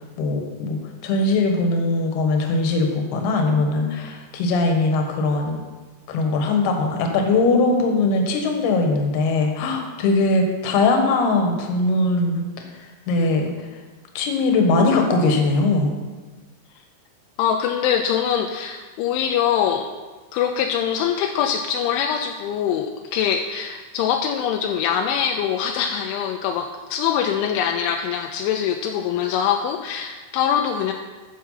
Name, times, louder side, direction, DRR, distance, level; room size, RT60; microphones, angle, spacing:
voice 1, 0.2-5.6 6.1-12.5 13.1-13.5 14.1-15.9, left 3 dB, 65° left, 3 dB, 3.1 m, -20 dB
voice 2, 17.4-19.9 20.3-30.9, left 8 dB, 85° left, 4 dB, 2.9 m, -23 dB
13.0 x 7.1 x 5.7 m, 1.3 s
omnidirectional pair, 5.5 m